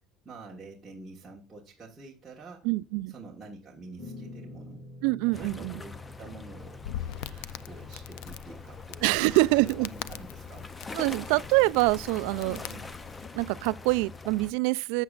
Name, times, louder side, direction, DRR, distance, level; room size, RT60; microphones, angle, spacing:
voice 1, 0.2-2.7 3.1-4.8 5.2-6.9 7.6-10.7 12.4-12.9, right 3 dB, 10° right, 1.3 m, -47 dB
voice 2, 2.6-3.1 5.0-5.8 9.0-9.9 10.9-12.6 13.3-15.0, right 22 dB, 80° right, 0.3 m, -25 dB
sound 1, 4.0-9.0, left 1 dB, 40° left, 5.4 m, -48 dB
sound 2, 5.3-14.5, left 4 dB, 15° left, 0.5 m, -43 dB
Crackle, 6.6-13.3, left 12 dB, 75° left, 0.4 m, -42 dB
12.0 x 7.3 x 2.4 m
cardioid pair, 165°, 0 cm